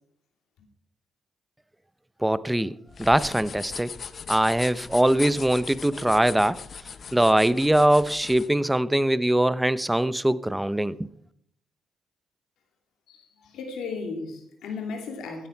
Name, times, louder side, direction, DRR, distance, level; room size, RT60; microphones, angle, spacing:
voice 1, 2.2-2.7 3.0-3.9 4.3-6.6 7.1-11.1, right 1 dB, 10° right, 0.6 m, -22 dB
sound 1, 2.9-8.5, left 6 dB, 50° left, 0.7 m, -39 dB
voice 2, 13.1-15.5, left 4 dB, 85° left, 2.7 m, -35 dB
16.0 x 9.7 x 4.5 m
cardioid pair, 80°, 0 cm